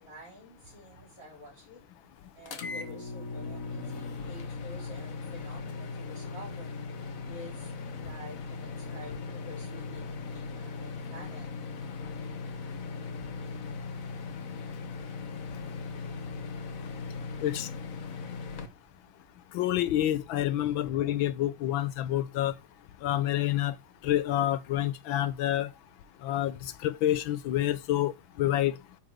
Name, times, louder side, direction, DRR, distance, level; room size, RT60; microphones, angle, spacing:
voice 1, 0.0-1.8 2.3-6.7 7.2-11.5 20.5-20.9, left 1 dB, 40° right, 4.7 m, -49 dB
sound 1, 2.5-18.7, left 4 dB, 50° left, 1.2 m, -38 dB
voice 2, 19.5-22.5 23.0-23.7 24.0-25.7 26.2-28.1 28.4-28.8, left 13 dB, 75° left, 1.5 m, -28 dB
9.2 x 5.2 x 4.7 m
omnidirectional pair, 2.3 m